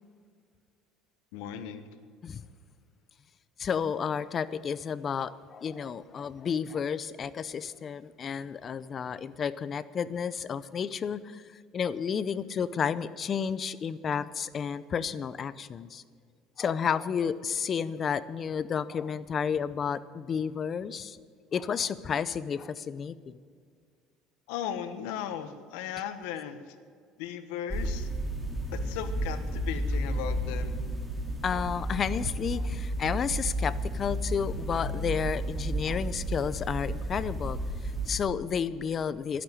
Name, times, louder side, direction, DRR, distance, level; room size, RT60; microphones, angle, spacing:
voice 1, 1.3-1.8 24.5-26.6 27.2-28.1 28.7-30.8, left 9 dB, 85° left, 10 dB, 1.3 m, -36 dB
voice 2, 3.6-16.0 16.6-21.2 21.5-23.4 31.4-37.6 37.8-39.4, left 7 dB, 35° left, 16 dB, 0.6 m, -31 dB
sound 1, 27.7-38.2, right 1 dB, 5° left, 2.5 m, -32 dB
12.0 x 11.5 x 9.6 m, 2.1 s
cardioid pair, 135°, 0 cm